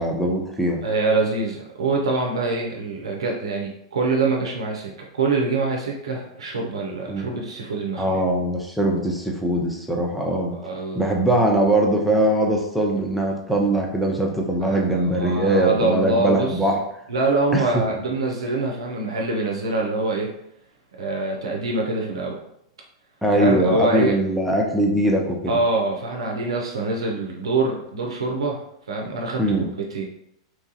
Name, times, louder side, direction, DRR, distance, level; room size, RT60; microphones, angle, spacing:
voice 1, 0.0-0.8 7.1-7.3 8.0-10.5 10.9-16.9 17.5-17.8 23.2-25.6 29.4-29.6, right 1 dB, ahead, -1 dB, 0.6 m, -21 dB
voice 2, 0.8-8.2 10.5-11.1 14.6-16.6 17.1-20.3 21.0-22.4 23.4-24.2 25.5-28.6 28.9-29.4 29.8-30.0, right 3 dB, 80° right, 0 dB, 0.4 m, -25 dB
3.0 x 2.3 x 2.7 m, 0.77 s
hypercardioid pair, 105°, 3 cm